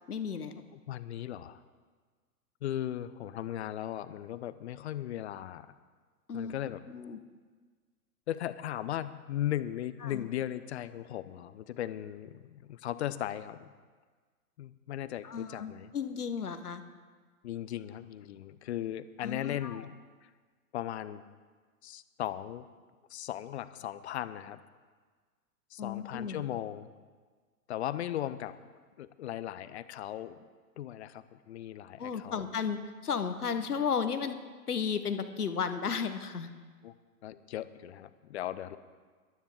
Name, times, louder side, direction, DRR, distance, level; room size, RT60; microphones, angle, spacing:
voice 1, 0.1-0.6 6.3-6.6 6.9-7.2 10.0-10.3 15.2-16.8 19.2-19.8 25.8-26.4 32.0-34.4 34.7-36.5, left 6 dB, 75° left, 9 dB, 1.3 m, -34 dB
voice 2, 0.7-1.6 2.6-5.7 6.3-6.8 8.3-13.7 14.6-15.9 17.4-20.0 20.7-21.2 21.8-22.7 23.1-24.6 25.7-26.9 27.7-28.5 29.0-30.5 30.8-32.4 36.8-36.9 37.2-38.8, left 12 dB, 45° left, 14 dB, 0.8 m, -37 dB
22.0 x 12.5 x 3.7 m, 1.5 s
figure-of-eight pair, 105°, 46 cm